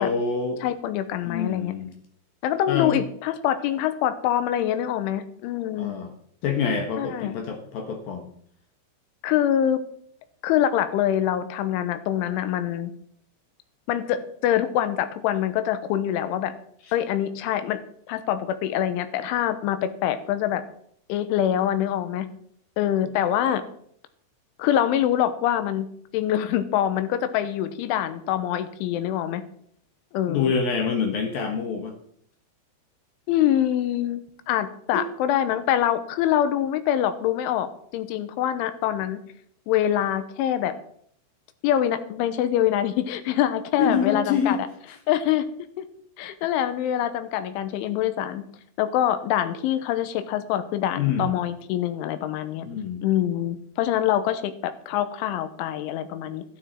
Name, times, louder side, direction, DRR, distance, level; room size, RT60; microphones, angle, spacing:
voice 1, 0.0-0.6 1.2-1.9 2.7-3.0 5.8-6.1 6.4-8.3 16.8-16.9 30.3-31.9 34.9-35.1 43.8-44.6 51.0-51.3 52.7-53.0, left 6 dB, 65° left, 4 dB, 2.5 m, -26 dB
voice 2, 0.6-1.7 2.4-6.0 7.0-7.3 9.2-9.8 10.4-12.9 13.9-16.5 16.9-17.8 18.1-20.6 21.1-22.3 22.8-23.6 24.6-25.9 26.1-29.4 30.1-30.5 33.3-34.2 34.5-39.2 39.7-40.7 41.6-44.6 45.1-45.4 45.8-45.9 46.2-48.4 48.8-52.7 53.0-56.4, left 11 dB, 85° left, 11 dB, 3.3 m, -25 dB
13.0 x 12.0 x 4.5 m, 0.65 s
omnidirectional pair, 5.6 m